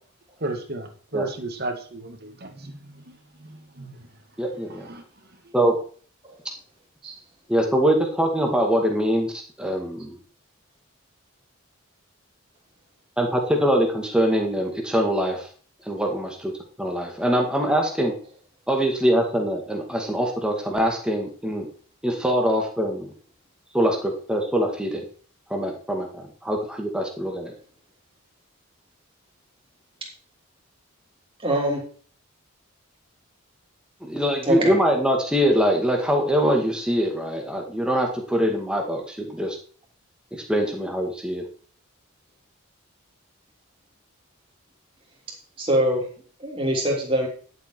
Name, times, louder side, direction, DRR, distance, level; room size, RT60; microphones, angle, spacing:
voice 1, 0.4-4.0 4.9-5.0, right 2 dB, 45° right, 5 dB, 2.0 m, -34 dB
voice 2, 4.4-4.9 5.5-5.8 7.5-10.2 13.2-15.5 15.9-16.5 16.8-18.1 18.7-21.7 22.0-23.1 23.7-25.1 25.5-27.5 34.0-39.6 40.3-41.4, equal, 5° right, 1 dB, 2.1 m, -23 dB
voice 3, 31.4-31.9 34.4-34.7 45.6-46.1 46.4-47.3, right 1 dB, 25° right, -1 dB, 3.3 m, -23 dB
11.5 x 7.8 x 4.6 m, 0.44 s
head